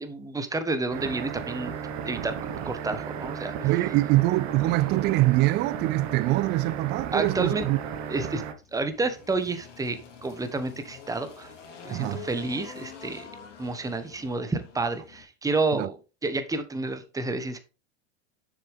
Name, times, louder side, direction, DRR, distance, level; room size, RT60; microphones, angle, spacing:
voice 1, 0.0-1.7 2.0-2.4 2.6-3.7 7.1-7.6 8.1-8.4 8.7-11.5 11.8-13.2 13.6-16.0 16.2-17.6, right 3 dB, 10° right, 1.2 m, -30 dB
sound 1, 0.9-8.5, right 7 dB, 45° right, 1.5 m, -34 dB
voice 2, 3.6-7.8 11.9-12.3 15.7-15.9, right 18 dB, 30° right, 0.4 m, -24 dB
Engine, 7.8-15.2, left 6 dB, 85° left, 2.5 m, -46 dB
6.9 x 6.9 x 3.6 m
hypercardioid pair, 100°, 35 cm